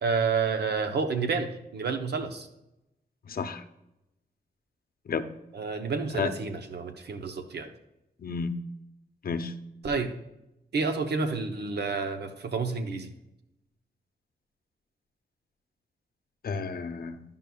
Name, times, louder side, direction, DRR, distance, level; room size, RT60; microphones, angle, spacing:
voice 1, 0.0-2.5 5.5-7.7 9.8-10.1 10.7-13.1, right 4 dB, 85° right, 7 dB, 0.8 m, -29 dB
voice 2, 3.3-3.6 5.1-5.2 6.2-6.3 8.2-8.5 9.2-9.5 16.4-17.2, left 5 dB, 65° left, 9 dB, 0.6 m, -31 dB
12.0 x 5.4 x 2.3 m, 0.89 s
wide cardioid pair, 100°, 17 cm